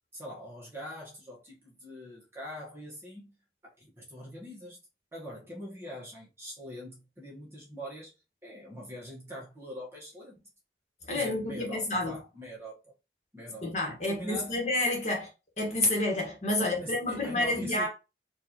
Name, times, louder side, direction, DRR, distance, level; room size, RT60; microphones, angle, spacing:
voice 1, 0.1-3.3 3.6-4.8 5.1-8.1 8.4-10.5 11.1-12.9 13.3-13.7 14.1-14.7 16.6-17.9, equal, 15° right, 1.3 m, -43 dB
voice 2, 11.1-12.2 13.6-15.3 15.6-17.9, left 2 dB, 40° left, 1.4 m, -29 dB
4.4 x 2.7 x 3.0 m
head